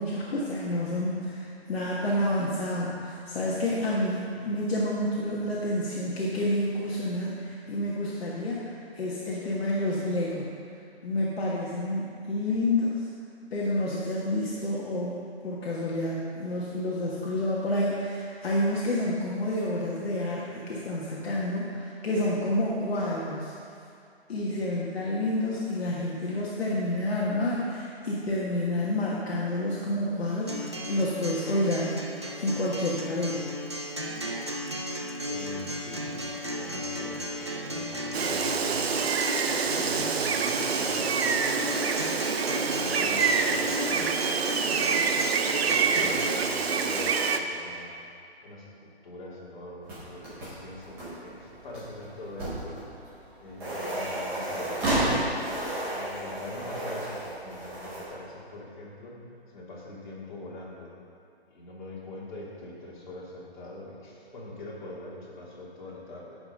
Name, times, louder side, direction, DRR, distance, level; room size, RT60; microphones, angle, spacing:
voice 1, 0.0-10.5 11.0-13.1 13.5-23.5 24.3-32.0 32.4-33.4, left 1 dB, 65° left, -5 dB, 1.5 m, -29 dB
Acoustic guitar, 30.5-46.5, equal, 25° right, 0.4 m, -35 dB
voice 2, 35.2-38.9 39.4-41.4 41.7-42.3 42.7-45.1 45.6-47.9 48.4-55.4 55.9-60.9 61.5-66.4, left 2 dB, 45° left, -5 dB, 2.5 m, -43 dB
Gull seagull, 38.1-47.4, right 5 dB, 70° right, 0.8 m, -26 dB
sound 1, 49.8-58.0, right 1 dB, 5° right, 0.8 m, -33 dB
10.5 x 5.3 x 5.3 m, 2.5 s
hypercardioid pair, 175°, 32 cm